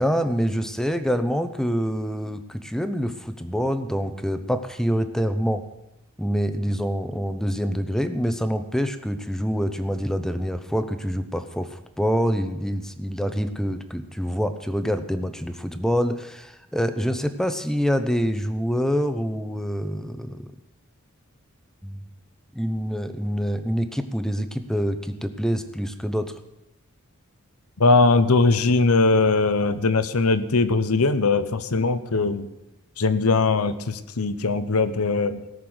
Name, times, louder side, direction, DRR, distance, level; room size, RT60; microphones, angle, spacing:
voice 1, 0.0-5.6 6.2-20.5 21.8-22.0 22.5-26.3, equal, ahead, 9 dB, 0.8 m, -26 dB
voice 2, 27.8-32.5 33.0-35.4, left 3 dB, 80° left, 12 dB, 0.9 m, -20 dB
17.0 x 6.7 x 7.9 m, 0.93 s
head